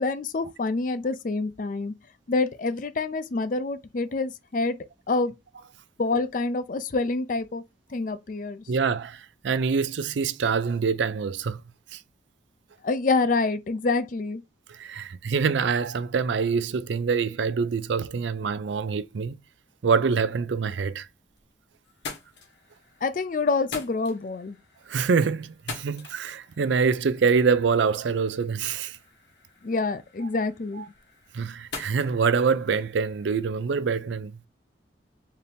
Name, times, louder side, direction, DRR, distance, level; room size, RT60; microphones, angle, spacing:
voice 1, 0.0-1.9 2.3-4.8 5.1-5.3 6.0-7.6 7.9-8.6 12.8-14.4 23.0-24.6 29.6-30.8, left 3 dB, 45° left, 0.4 m, -27 dB
voice 2, 8.7-11.6 11.9-12.0 14.7-19.4 19.8-21.1 24.9-29.0 31.3-34.3, right 5 dB, 75° right, 0.4 m, -25 dB
sound 1, 21.0-21.5 21.8-33.4, left 4 dB, 65° left, 1.3 m, -45 dB
4.2 x 2.6 x 3.4 m
head